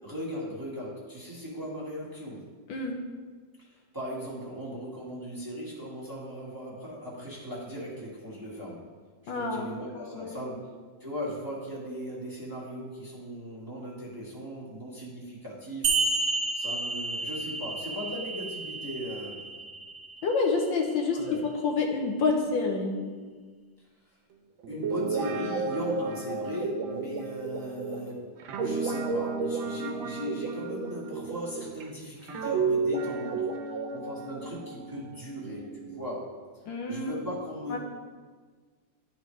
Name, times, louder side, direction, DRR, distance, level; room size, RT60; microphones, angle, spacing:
voice 1, 0.0-2.5 3.6-8.8 9.2-10.7 11.0-15.9 16.5-19.4 21.1-21.5 24.0-24.2 24.7-33.5 33.9-36.3 36.9-37.8, equal, 10° right, -7 dB, 1.5 m, -38 dB
voice 2, 9.3-9.7 10.1-10.4 20.2-21.2 21.6-23.2 36.7-37.2 37.7-37.8, left 4 dB, 75° left, 1 dB, 1.5 m, -28 dB
sound 1, 15.8-20.9, right 3 dB, 60° right, 1.1 m, -31 dB
Guitar, 24.6-31.8 32.3-36.0, right 4 dB, 85° right, 1.5 m, -32 dB
12.0 x 4.4 x 3.2 m, 1.5 s
omnidirectional pair, 2.1 m